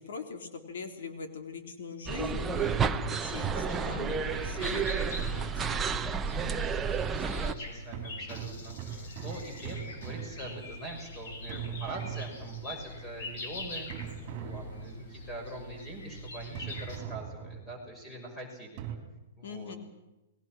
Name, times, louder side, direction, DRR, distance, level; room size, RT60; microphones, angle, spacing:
voice 1, 0.0-5.9 19.4-19.8, left 5 dB, 70° left, 5 dB, 3.3 m, -41 dB
sound 1, 2.1-7.5, right 6 dB, 10° right, 0.7 m, -31 dB
sound 2, 2.6-3.9 5.2-6.5 7.9-11.0 11.5-13.0 13.9-15.3 16.6-17.9 18.8-19.0, right 9 dB, 30° right, 3.6 m, -41 dB
voice 2, 3.5-5.3 6.3-6.8 7.1-18.9 19.4-19.7, right 1 dB, 5° left, 1 dB, 5.9 m, -43 dB
sound 3, 4.2-17.0, left 1 dB, 55° left, 6.8 m, -43 dB
30.0 x 21.0 x 6.2 m, 0.98 s
hypercardioid pair, 170°, 0 cm